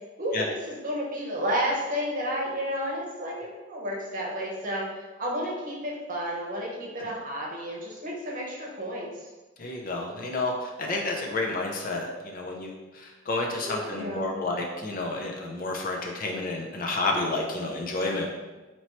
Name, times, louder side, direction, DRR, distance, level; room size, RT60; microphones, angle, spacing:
voice 1, 0.2-4.9 5.2-9.3 13.5-14.4, equal, 45° right, -2 dB, 0.9 m, -31 dB
voice 2, 9.6-18.3, left 2 dB, 45° left, 0 dB, 0.5 m, -30 dB
4.4 x 2.9 x 3.0 m, 1.2 s
head